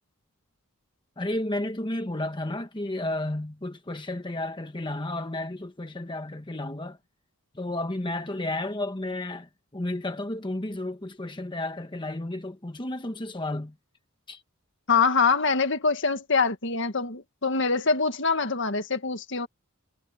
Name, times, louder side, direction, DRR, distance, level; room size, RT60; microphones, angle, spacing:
voice 1, 1.2-7.0 7.5-13.7 14.3-14.4, left 1 dB, 20° left, 1.1 m, -32 dB
voice 2, 14.9-19.5, left 4 dB, 60° left, 1.8 m, -24 dB
head